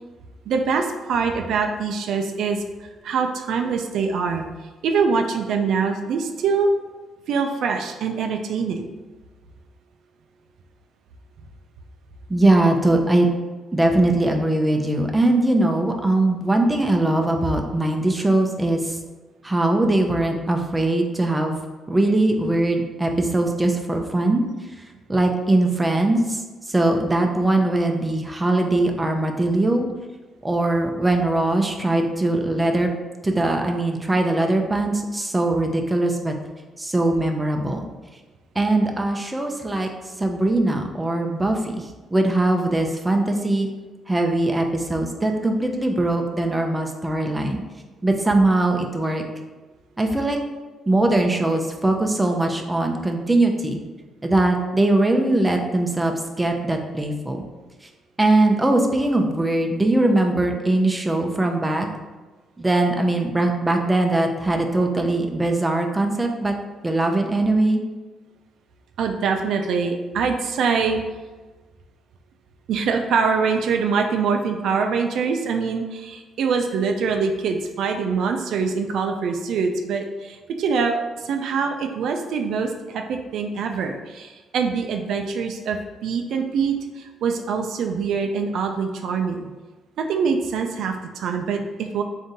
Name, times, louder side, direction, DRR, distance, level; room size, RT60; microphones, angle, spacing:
voice 1, 0.5-4.5 4.8-6.7 7.3-8.9 69.0-71.0 72.7-89.5 90.0-92.0, right 5 dB, 75° right, 4 dB, 0.4 m, -24 dB
voice 2, 12.3-13.3 13.7-19.0 19.4-21.6 21.9-24.4 25.1-29.9 30.4-32.9 33.2-36.3 36.8-37.9 38.6-39.9 40.2-43.7 44.1-47.6 48.0-49.2 50.0-50.4 50.9-53.8 54.2-57.5 58.2-61.9 62.6-66.5 66.8-67.8, right 2 dB, 15° right, 3 dB, 0.5 m, -21 dB
3.6 x 2.7 x 3.9 m, 1.3 s
cardioid pair, 90°, 0 cm